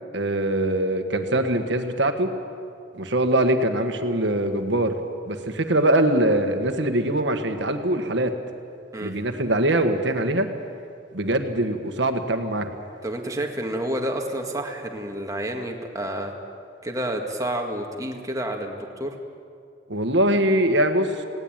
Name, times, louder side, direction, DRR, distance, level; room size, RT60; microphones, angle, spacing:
voice 1, 0.1-2.3 2.9-4.9 5.3-8.3 9.0-10.5 11.1-12.7 19.9-21.1, right 1 dB, 65° right, 6 dB, 1.6 m, -22 dB
voice 2, 13.0-16.3 16.8-19.2, right 1 dB, 20° right, 2 dB, 1.9 m, -29 dB
19.5 x 18.0 x 9.1 m, 2.4 s
head